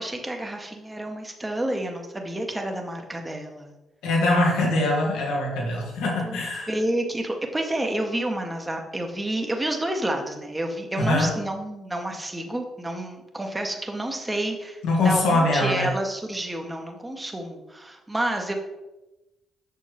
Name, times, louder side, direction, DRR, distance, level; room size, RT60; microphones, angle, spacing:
voice 1, 0.0-3.7 6.2-14.8 15.0-18.5, right 1 dB, 15° right, 3 dB, 1.5 m, -29 dB
voice 2, 4.0-6.7 11.0-11.4 14.8-15.9, left 2 dB, 75° left, -3 dB, 2.3 m, -23 dB
8.0 x 6.2 x 3.5 m, 1.0 s
hypercardioid pair, 45°, 0 cm